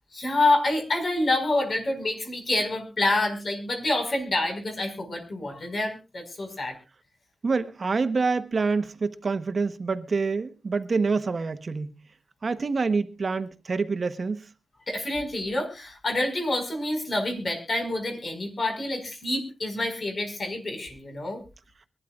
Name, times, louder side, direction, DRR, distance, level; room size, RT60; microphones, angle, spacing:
voice 1, 0.1-6.8 14.9-21.4, left 2 dB, 50° left, 4.9 m, -27 dB
voice 2, 7.4-11.9 12.4-14.5, right 4 dB, 50° right, 0.9 m, -26 dB
23.5 x 12.0 x 2.4 m
wide cardioid pair, 90°, 0 cm